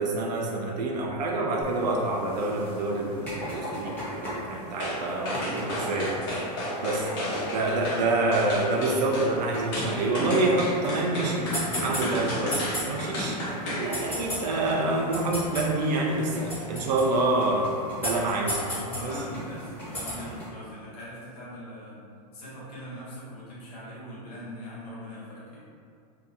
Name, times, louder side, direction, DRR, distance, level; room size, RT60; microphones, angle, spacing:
voice 1, 0.0-6.2 6.8-7.0 7.5-11.5 11.8-13.4 13.8-17.7 18.0-19.1, right 2 dB, 85° right, -1 dB, 0.4 m, -27 dB
sound 1, 1.6-20.5, equal, 10° left, 0.6 m, -37 dB
sound 2, 4.8-5.0 5.2-8.0 8.3-9.3 9.7-13.9 14.2-14.4, left 1 dB, 40° left, 0.8 m, -32 dB
voice 2, 7.1-7.6 7.9-8.1 18.8-22.0 22.3-25.6, equal, 65° left, -8 dB, 1.1 m, -41 dB
2.6 x 2.3 x 2.5 m, 2.3 s
supercardioid pair, 160°, 21 cm